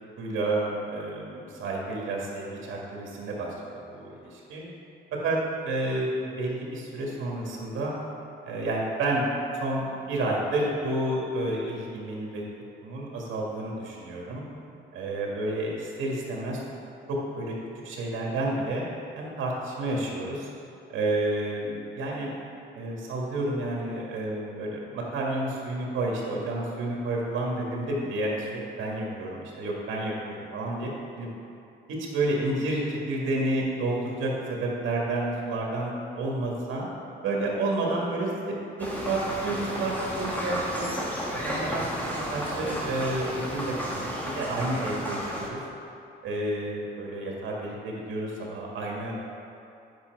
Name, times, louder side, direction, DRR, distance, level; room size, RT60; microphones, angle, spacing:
voice 1, 0.2-3.5 3.9-4.7 5.2-5.4 5.6-7.9 8.5-9.3 9.5-12.4 12.8-14.4 14.9-16.6 17.1-17.5 17.8-18.8 19.1-20.5 20.9-22.3 22.7-28.5 28.8-30.1 30.5-30.9 31.2-31.3 32.1-36.9 37.2-38.6 39.1-40.9 41.3-44.1 44.4-45.6 46.2-49.1, right 2 dB, 80° right, -2 dB, 1.8 m, -30 dB
sound 1, 38.8-45.5, equal, 10° left, 1.7 m, -32 dB
8.8 x 5.8 x 4.6 m, 2.7 s
cardioid pair, 90°, 20 cm